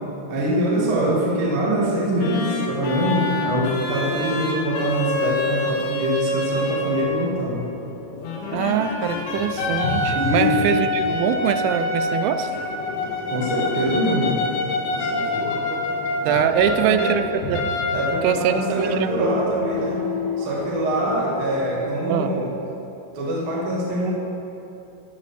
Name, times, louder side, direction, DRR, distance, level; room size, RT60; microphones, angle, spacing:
voice 1, 0.3-7.6 10.1-10.8 12.5-12.6 13.3-14.4 14.9-15.6 16.2-17.1 17.9-20.0 20.4-22.5 23.1-24.1, right 1 dB, 60° right, -3 dB, 1.4 m, -24 dB
sound 1, 2.2-7.3 8.2-17.2 17.5-18.6, left 3 dB, 75° left, 3.2 m, -26 dB
sound 2, 6.5-21.7, left 3 dB, 60° left, 2.5 m, -33 dB
voice 2, 8.5-12.5 16.3-17.6 18.2-19.4 22.1-22.3, right 9 dB, 85° right, 10 dB, 2.8 m, -23 dB
13.5 x 4.9 x 6.8 m, 2.8 s
omnidirectional pair, 5.2 m